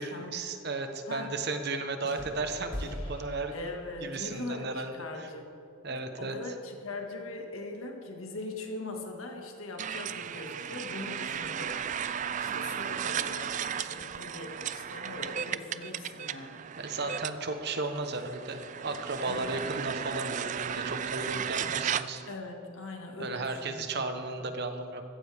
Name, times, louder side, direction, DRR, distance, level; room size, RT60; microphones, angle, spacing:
voice 1, 0.0-3.5 4.0-5.3 5.8-6.4 16.8-22.2 23.2-25.0, right 3 dB, 50° right, 7 dB, 1.1 m, -34 dB
sound 1, 2.0-4.2, equal, 25° left, 1.9 m, -41 dB
voice 2, 3.5-5.5 5.8-11.7 12.1-16.7 19.2-19.6 22.3-24.0 24.4-24.5, left 2 dB, 85° left, 2 dB, 1.9 m, -41 dB
sound 2, 9.8-22.3, right 8 dB, 35° right, 0.3 m, -35 dB
15.0 x 14.5 x 3.5 m, 2.7 s
head